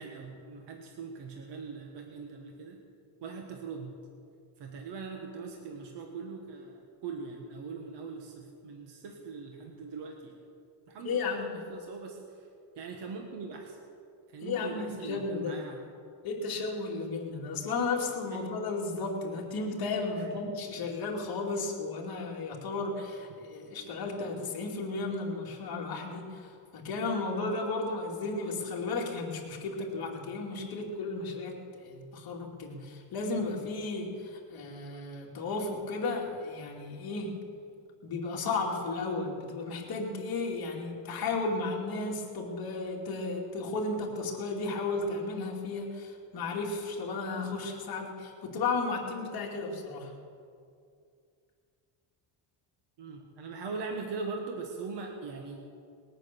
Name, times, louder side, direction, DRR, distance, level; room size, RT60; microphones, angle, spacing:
voice 1, 0.0-2.8 3.2-4.0 4.6-10.3 10.9-12.2 12.8-13.8 14.3-15.8 53.0-55.6, right 4 dB, 55° right, 2 dB, 1.6 m, -41 dB
voice 2, 11.0-11.6 14.4-15.6 16.2-37.4 38.0-50.1, left 3 dB, 45° left, -1 dB, 2.7 m, -34 dB
20.0 x 9.0 x 6.8 m, 2.3 s
cardioid pair, 160°, 50 cm